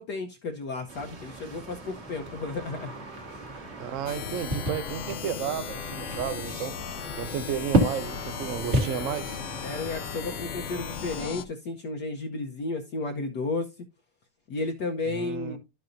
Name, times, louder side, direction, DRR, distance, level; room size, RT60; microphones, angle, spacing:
voice 1, 0.0-2.9 9.6-13.7 14.5-15.6, left 3 dB, 60° left, 1.3 m, -33 dB
sound 1, 0.9-11.4, right 1 dB, 35° right, 1.8 m, -33 dB
voice 2, 3.8-6.8 7.2-9.4 15.1-15.6, right 9 dB, 80° right, 0.7 m, -33 dB
sound 2, 4.1-11.4, left 8 dB, 80° left, 0.6 m, -37 dB
11.5 x 6.8 x 2.6 m
omnidirectional pair, 2.3 m